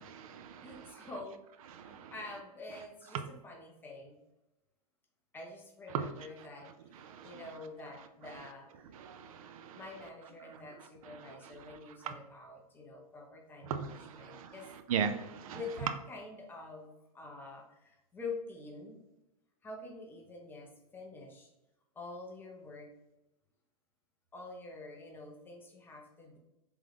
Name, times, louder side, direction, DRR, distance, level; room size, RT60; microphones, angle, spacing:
voice 1, 0.0-1.1 1.7-2.1 5.9-6.1 7.1-7.4 8.9-9.8 13.7-14.5 14.9-15.6, right 7 dB, 60° right, 9 dB, 0.4 m, -38 dB
voice 2, 0.6-1.4 1.8-4.2 5.3-8.7 9.0-9.2 9.7-14.7 15.5-19.0 19.6-21.5 21.9-22.9 24.3-26.4, left 3 dB, 10° left, -1 dB, 0.5 m, -47 dB
3.6 x 2.0 x 3.3 m, 0.94 s
hypercardioid pair, 140°, 20 cm